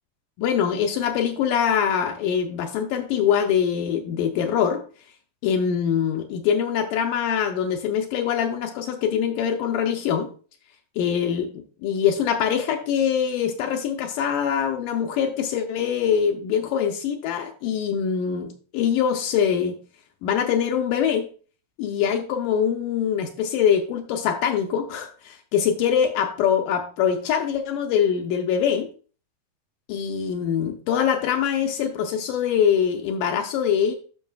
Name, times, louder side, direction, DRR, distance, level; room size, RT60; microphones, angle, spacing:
voice 1, 0.4-4.8 5.4-10.3 11.0-19.8 20.2-21.3 21.8-28.9 29.9-34.0, left 8 dB, 80° left, 4 dB, 2.0 m, -23 dB
12.5 x 5.5 x 2.3 m, 0.39 s
omnidirectional pair, 4.4 m